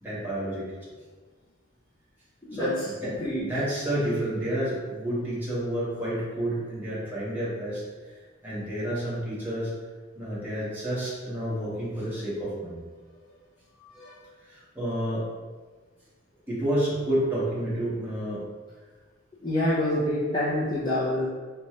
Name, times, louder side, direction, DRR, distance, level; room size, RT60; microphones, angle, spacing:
voice 1, 0.0-0.6 2.5-3.1 3.4-7.8 8.4-9.7 10.1-12.8 13.8-13.9 14.7-15.2 16.5-18.4, right 1 dB, 10° right, -10 dB, 1.3 m, -29 dB
voice 2, 19.4-21.3, left 1 dB, 25° left, -9 dB, 0.5 m, -26 dB
4.1 x 2.2 x 3.0 m, 1.4 s
head